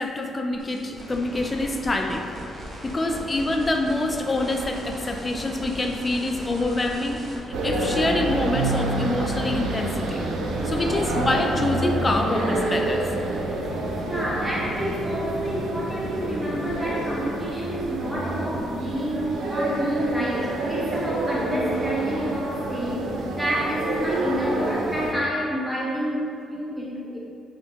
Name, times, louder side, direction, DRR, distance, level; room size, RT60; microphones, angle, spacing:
voice 1, 0.0-2.2 2.8-7.2 7.6-10.2 10.6-13.0, left 2 dB, 25° left, 3 dB, 0.3 m, -26 dB
sound 1, 0.6-7.4, equal, 40° right, 0.6 m, -38 dB
sound 2, 7.5-25.1, right 2 dB, 75° right, 0.3 m, -28 dB
voice 2, 14.0-27.2, equal, 5° right, -6 dB, 0.8 m, -28 dB
3.6 x 2.1 x 2.8 m, 2.5 s
cardioid pair, 90°, 0 cm